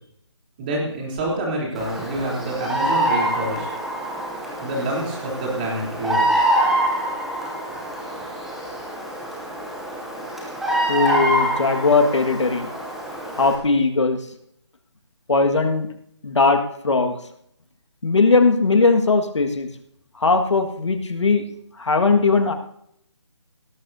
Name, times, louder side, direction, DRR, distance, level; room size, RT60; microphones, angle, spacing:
voice 1, 0.6-3.7 4.6-6.3, right 1 dB, 20° right, -3 dB, 3.4 m, -27 dB
Bird vocalization bird call bird song, 1.7-13.6, right 1 dB, ahead, 0.7 m, -25 dB
voice 2, 10.9-12.7 13.3-14.2 15.3-15.9 16.2-17.1 18.0-19.7 20.2-21.4 21.8-22.5, left 3 dB, 75° left, 5 dB, 1.7 m, -19 dB
17.5 x 13.0 x 2.7 m, 0.72 s
figure-of-eight pair, 170°, 15 cm